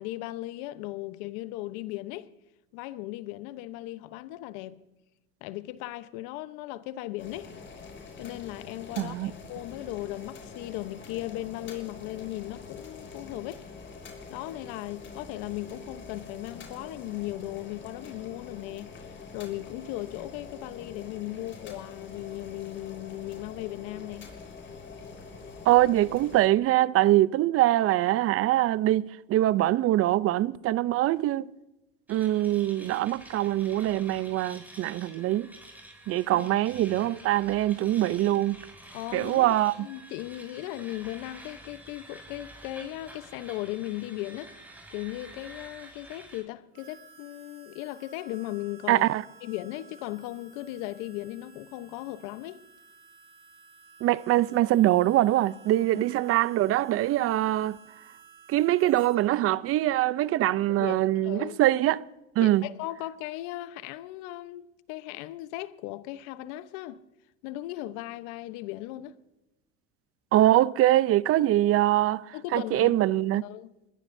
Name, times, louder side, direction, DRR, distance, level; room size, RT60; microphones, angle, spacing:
voice 1, 0.0-2.3 2.7-4.8 5.4-7.5 8.2-13.6 14.3-24.3 36.3-36.5 38.9-44.5 44.9-49.1 49.4-52.6 55.9-56.0 60.7-61.0 61.2-61.6 62.4-67.0 67.4-69.2 72.3-73.0 73.4-73.7, left 16 dB, 70° left, 1.0 m, -37 dB
Boiling, 7.2-26.4, left 4 dB, 40° left, 6.2 m, -45 dB
voice 2, 9.0-9.3 25.7-31.5 32.1-35.5 36.1-38.6 39.1-39.7 48.9-49.2 54.0-57.8 58.5-62.0 62.4-62.7 70.3-73.4, right 14 dB, 45° right, 0.6 m, -23 dB
sound 1, 32.1-46.4, right 1 dB, 5° right, 6.7 m, -49 dB
Harmonica, 46.7-59.2, right 5 dB, 85° right, 7.9 m, -54 dB
22.0 x 21.0 x 2.7 m
supercardioid pair, 90°, 32 cm